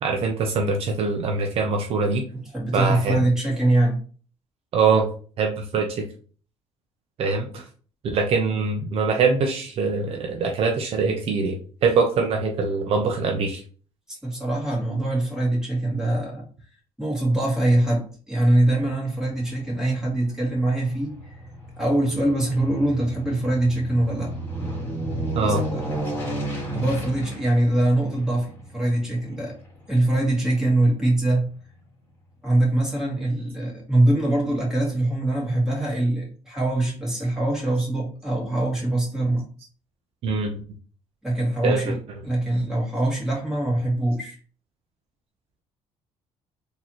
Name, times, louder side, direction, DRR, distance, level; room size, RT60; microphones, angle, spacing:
voice 1, 0.0-2.2 2.7-3.2 4.7-5.1 5.4-6.1 7.2-7.6 8.1-13.6 25.3-25.6 40.2-40.6 41.6-41.9, right 4 dB, 55° right, 3 dB, 0.6 m, -23 dB
voice 2, 2.5-4.0 14.1-16.5 17.0-21.3 21.8-24.3 25.2-25.9 26.7-29.6 29.9-31.5 32.4-39.4 41.2-44.3, right 1 dB, 5° right, -4 dB, 2.0 m, -23 dB
Aircraft, 19.0-31.2 31.6-31.7, right 1 dB, 20° left, 2.0 m, -34 dB
3.9 x 2.9 x 3.0 m, 0.41 s
cardioid pair, 105°, 11 cm